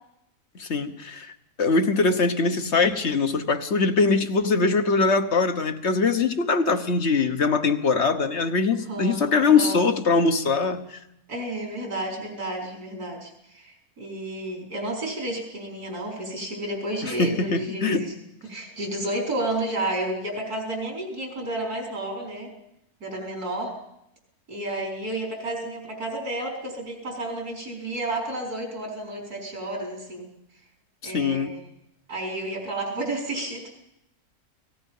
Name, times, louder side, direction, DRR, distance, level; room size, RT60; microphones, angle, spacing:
voice 1, 0.5-1.3 1.6-11.0 17.0-18.1 31.0-31.5, left 4 dB, 50° left, 9 dB, 1.4 m, -22 dB
voice 2, 8.7-9.8 11.3-18.1 18.5-22.5 23.0-23.8 24.5-30.3 31.0-31.7 32.1-33.7, right 1 dB, 90° right, 0 dB, 5.0 m, -31 dB
30.0 x 18.5 x 5.5 m, 0.81 s
omnidirectional pair, 1.6 m